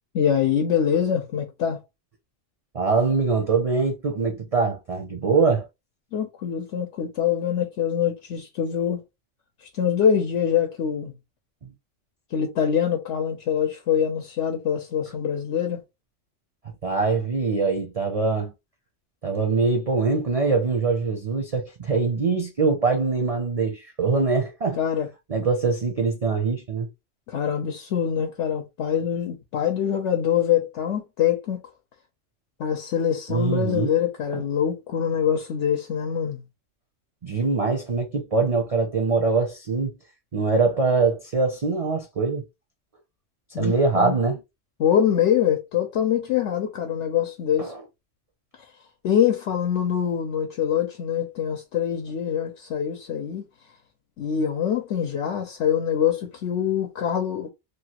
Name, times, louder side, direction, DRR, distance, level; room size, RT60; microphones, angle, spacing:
voice 1, 0.1-1.8 6.1-9.0 9.6-11.1 12.3-15.8 24.7-25.1 27.3-31.6 32.6-36.4 43.5-44.2 44.8-47.7 49.0-53.4 54.2-57.5, left 8 dB, 75° left, 0.9 m, -24 dB
voice 2, 2.7-5.7 16.8-18.5 19.2-24.8 25.3-26.9 33.3-33.9 34.3-34.4 37.2-39.9 40.3-42.4 43.6-44.4 47.6-47.8, right 4 dB, 45° right, 0.5 m, -23 dB
3.0 x 2.4 x 2.9 m
omnidirectional pair, 1.3 m